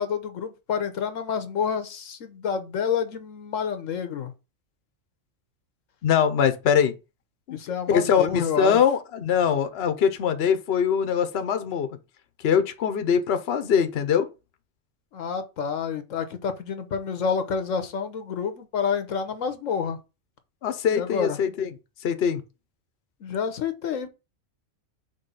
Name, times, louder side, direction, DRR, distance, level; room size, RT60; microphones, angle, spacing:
voice 1, 0.0-4.3 7.5-8.8 15.1-20.0 20.9-21.4 23.2-24.1, left 6 dB, 85° left, 1.2 m, -28 dB
voice 2, 6.0-6.9 7.5-7.6 7.9-11.9 12.4-14.3 20.6-21.7 22.0-22.4, left 7 dB, 60° left, 1.0 m, -22 dB
5.3 x 3.2 x 5.6 m
omnidirectional pair, 1.3 m